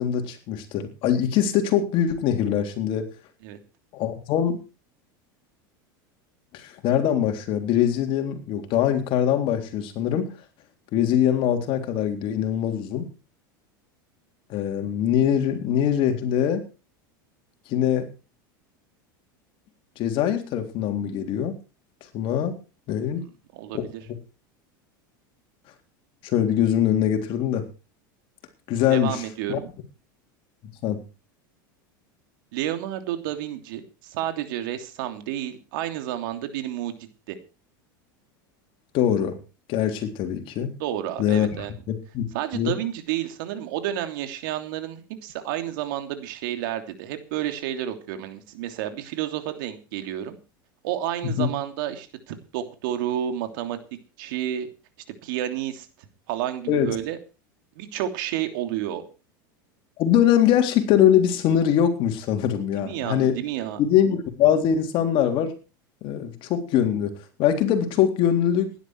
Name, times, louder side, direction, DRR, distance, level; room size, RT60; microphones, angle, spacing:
voice 1, 0.0-3.1 3.9-4.6 6.5-10.4 10.9-13.1 14.5-16.7 17.7-18.1 20.0-21.6 22.1-22.6 22.9-23.2 23.7-23.8 26.2-27.7 28.7-29.2 29.5-29.6 30.8-31.0 38.9-39.4 39.7-40.7 41.2-42.3 42.5-42.7 51.2-51.5 56.7-56.9 60.0-63.4 63.8-65.5 66.0-68.7, left 9 dB, 50° left, 5 dB, 3.7 m, -23 dB
voice 2, 23.5-24.0 28.9-29.7 32.5-36.9 37.3-37.4 40.8-41.7 42.3-50.4 50.8-53.8 54.2-54.7 55.2-55.9 56.3-57.2 57.8-59.0 62.7-63.8, right 12 dB, 70° right, 7 dB, 3.1 m, -30 dB
16.5 x 11.5 x 4.7 m, 0.33 s
supercardioid pair, 110°, 11 cm